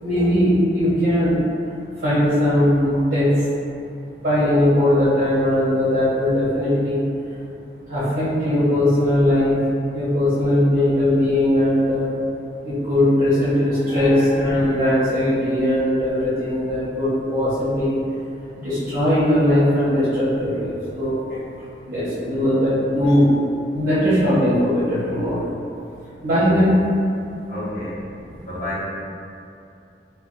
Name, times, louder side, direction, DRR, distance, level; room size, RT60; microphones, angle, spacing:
voice 1, 0.0-1.3 2.0-3.3 4.2-7.0 7.9-9.5 9.9-12.1 12.9-17.9 18.6-21.2 21.8-23.2 23.7-25.5 26.2-26.8, left 1 dB, 50° right, -12 dB, 0.8 m, -19 dB
voice 2, 27.5-28.0 28.4-28.8, left 1 dB, 40° left, -12 dB, 0.9 m, -29 dB
2.3 x 2.2 x 3.7 m, 2.5 s
head